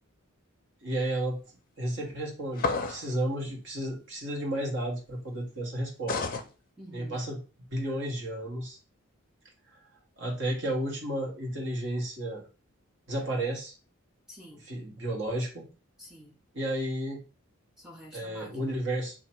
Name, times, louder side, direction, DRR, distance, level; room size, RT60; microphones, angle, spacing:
voice 1, 0.8-1.4 1.8-6.3 6.9-7.4 7.7-8.8 10.2-12.4 13.1-13.7 14.7-15.7 16.5-17.2 18.1-19.1, right 1 dB, 60° right, -2 dB, 1.3 m, -32 dB
sound 1, 2.6-3.1 6.1-6.5, left 4 dB, 40° left, 0.4 m, -30 dB
voice 2, 6.8-7.2 14.3-14.7 16.0-16.4 17.8-18.8, equal, 5° right, 0 dB, 0.6 m, -48 dB
2.9 x 2.4 x 4.3 m, 0.33 s
head